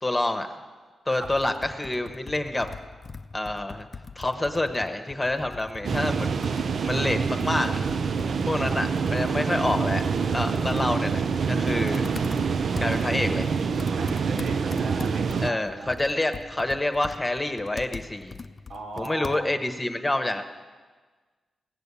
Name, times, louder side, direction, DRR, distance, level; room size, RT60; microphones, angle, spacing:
voice 1, 0.0-0.5 1.1-2.7 3.3-3.9 4.1-6.6 6.8-7.8 8.5-10.0 10.3-12.0 12.8-13.5 15.4-18.4 19.0-20.4, left 2 dB, 15° left, 7 dB, 1.1 m, -27 dB
Computer keyboard, 1.2-19.7, left 4 dB, 40° left, 0.5 m, -42 dB
sound 1, 5.8-15.5, right 5 dB, 65° right, 0.5 m, -26 dB
voice 2, 12.8-13.2 14.0-15.9 18.7-19.6, right 2 dB, 85° right, 1 dB, 2.0 m, -39 dB
18.0 x 7.0 x 8.3 m, 1.4 s
cardioid pair, 100°, 0 cm